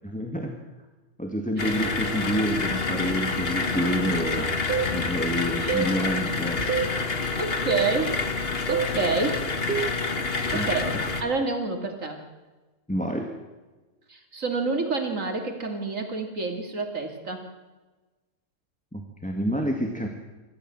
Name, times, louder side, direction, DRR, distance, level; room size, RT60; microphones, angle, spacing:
voice 1, 0.0-0.6 1.2-4.5 4.9-6.6 10.5-10.7 12.9-13.3 18.9-20.1, equal, 5° left, 2 dB, 1.9 m, -28 dB
sound 1, 1.6-11.2, left 3 dB, 50° left, 1.9 m, -28 dB
sound 2, 4.7-4.9 5.7-5.9 6.7-6.9 7.7-7.9 8.7-8.9 9.7-10.0, right 7 dB, 45° right, 1.5 m, -26 dB
voice 2, 7.4-8.2 8.7-9.4 10.5-10.9 11.2-12.2 14.1-17.4, right 3 dB, 80° right, 4 dB, 2.9 m, -28 dB
27.0 x 14.0 x 7.7 m, 1.2 s
omnidirectional pair, 1.3 m